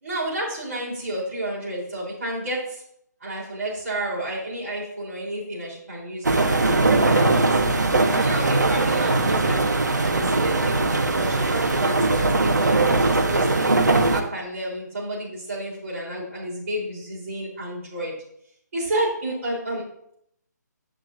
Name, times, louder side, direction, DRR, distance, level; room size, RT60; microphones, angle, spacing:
voice 1, 0.0-2.8 3.2-6.5 6.7-7.7 8.1-9.6 10.0-13.8 14.1-18.1 18.7-19.8, right 1 dB, 45° right, -5 dB, 4.0 m, -30 dB
sound 1, 6.2-14.2, right 2 dB, 70° right, 1.2 m, -20 dB
11.5 x 7.8 x 2.7 m, 0.71 s
figure-of-eight pair, 145°, 10 cm